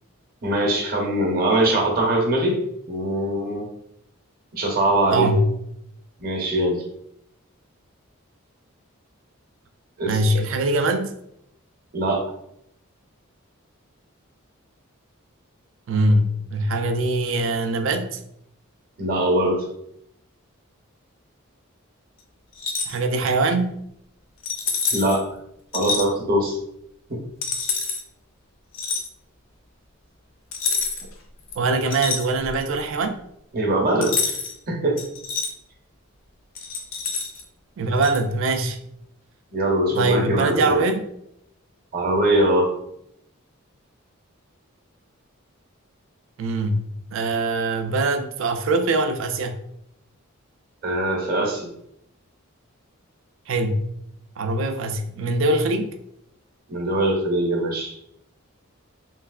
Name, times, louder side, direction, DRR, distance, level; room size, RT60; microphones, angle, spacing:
voice 1, 0.4-2.6 2.9-3.7 4.5-5.3 6.2-6.8 10.0-10.2 11.9-12.2 19.0-19.6 24.9-25.2 25.7-26.6 27.1-27.2 33.5-34.3 34.7-35.0 39.5-40.8 41.9-42.7 50.8-51.7 56.7-57.9, right 1 dB, 40° right, -1 dB, 0.7 m, -22 dB
voice 2, 5.1-5.5 10.0-11.1 15.9-18.2 22.9-23.8 31.5-33.2 37.8-38.8 39.9-41.1 46.4-49.5 53.5-53.9 54.4-55.9, right 2 dB, 60° right, 7 dB, 0.3 m, -22 dB
sound 1, 22.5-23.0 24.4-25.2 25.7-26.1 27.4-28.0 28.7-29.1 30.5-31.1 31.5-32.7 34.0-34.5 35.0-35.5 36.5-37.4 38.0-38.2, left 4 dB, 65° left, 0.5 m, -27 dB
3.2 x 2.8 x 2.3 m, 0.75 s
head